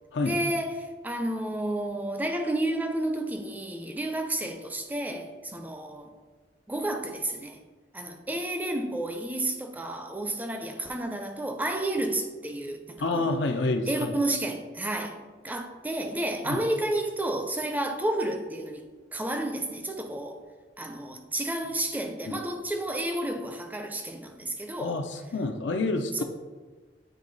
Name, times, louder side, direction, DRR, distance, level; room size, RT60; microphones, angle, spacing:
voice 1, 0.2-6.1 6.7-7.6 7.9-13.4 13.9-15.2 15.4-18.8 19.1-20.4 20.8-25.0 26.1-26.2, right 1 dB, 10° right, 5 dB, 0.4 m, -31 dB
voice 2, 13.0-14.1 16.5-16.6 22.3-22.4 24.8-26.2, left 2 dB, 90° left, 6 dB, 0.5 m, -28 dB
8.5 x 3.0 x 3.9 m, 1.3 s
head